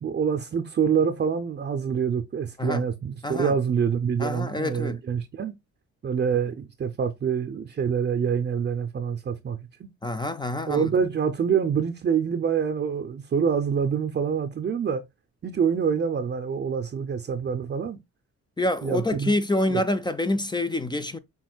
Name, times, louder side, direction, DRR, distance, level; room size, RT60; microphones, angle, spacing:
voice 1, 0.0-5.5 6.0-9.9 10.7-15.0 15.4-18.0 18.8-19.3 19.7-19.8, right 7 dB, 35° right, 0.6 m, -26 dB
voice 2, 3.2-3.5 4.2-5.0 10.0-10.9 18.6-21.2, left 1 dB, 15° left, 0.5 m, -27 dB
6.2 x 3.6 x 2.3 m
cardioid pair, 90°, 30 cm